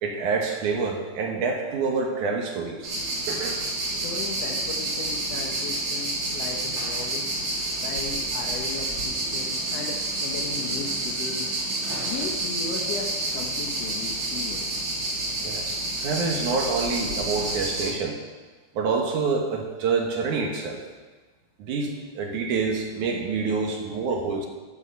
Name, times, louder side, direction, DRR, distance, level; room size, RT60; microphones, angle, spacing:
voice 1, 0.0-2.9 3.3-3.6 15.4-18.2 18.7-20.8 21.6-24.5, right 4 dB, 75° right, 1 dB, 2.7 m, -27 dB
sound 1, 2.8-17.9, right 2 dB, 45° right, 2.6 m, -29 dB
voice 2, 3.8-7.5 7.8-11.5 12.0-14.8, left 4 dB, 60° left, -1 dB, 1.9 m, -36 dB
12.5 x 8.0 x 5.6 m, 1.3 s
omnidirectional pair, 3.7 m